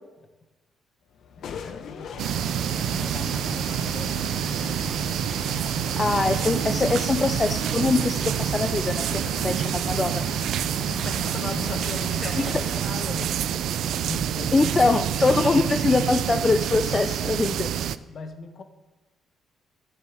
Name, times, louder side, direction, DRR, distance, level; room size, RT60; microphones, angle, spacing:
sound 1, 1.1-17.8, left 6 dB, 65° left, 0.9 m, -40 dB
voice 1, 1.4-5.0 5.6-5.8 9.0-9.5 10.5-13.6 14.0-14.9 15.3-15.4 18.1-18.6, left 4 dB, 50° left, 8 dB, 1.2 m, -40 dB
sound 2, 2.2-18.0, right 10 dB, 75° right, 0.4 m, -27 dB
voice 2, 6.0-9.0 9.4-10.2 12.2-12.5 14.5-17.7, left 3 dB, 30° left, 8 dB, 0.5 m, -23 dB
10.5 x 7.5 x 7.5 m, 1.1 s
cardioid pair, 90°, 0 cm